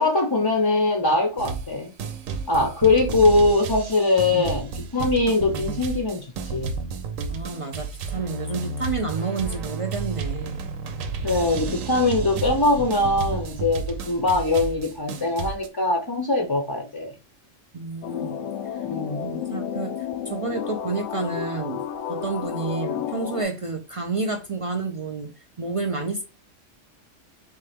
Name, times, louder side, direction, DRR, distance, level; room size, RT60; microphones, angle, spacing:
voice 1, 0.0-1.9 2.5-6.7 11.2-17.1 18.8-19.2, left 2 dB, 25° left, 0.6 m, -22 dB
sound 1, 1.4-1.7 2.0-15.7, right 4 dB, 90° right, 1.1 m, -32 dB
voice 2, 7.3-10.7 17.7-18.5 18.7-18.8 19.2-25.3 25.6-26.2, right 4 dB, 45° right, 0.4 m, -30 dB
sound 2, 18.0-23.4, left 8 dB, 80° left, 0.9 m, -31 dB
4.4 x 3.3 x 3.4 m
omnidirectional pair, 1.3 m